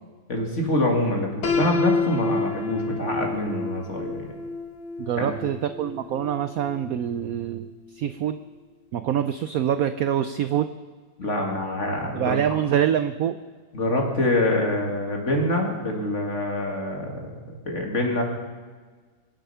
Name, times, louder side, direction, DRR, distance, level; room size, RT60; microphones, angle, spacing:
voice 1, 0.3-4.3 5.2-5.3 11.2-12.4 13.7-17.3 17.6-18.2, left 1 dB, 40° left, 1 dB, 2.5 m, -25 dB
Piano, 1.4-7.3, left 3 dB, 90° left, 2.5 m, -29 dB
voice 2, 5.0-8.4 8.9-10.7 12.1-13.4, right 10 dB, 75° right, 11 dB, 0.8 m, -25 dB
24.0 x 8.0 x 5.7 m, 1.4 s
omnidirectional pair, 2.1 m